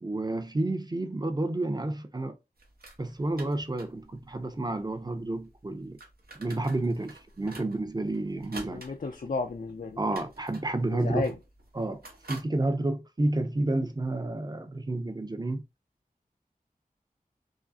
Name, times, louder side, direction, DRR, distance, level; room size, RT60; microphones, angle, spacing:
voice 1, 0.0-2.4 3.0-6.0 6.4-8.8 10.0-11.3 11.7-12.0 12.3-15.6, right 2 dB, 25° right, 0.5 m, -30 dB
sound 1, 2.6-12.4, right 2 dB, 90° right, 1.0 m, -50 dB
voice 2, 8.7-10.0 10.9-11.3, left 3 dB, 65° left, 0.4 m, -33 dB
4.9 x 2.0 x 2.6 m
wide cardioid pair, 55°, 15 cm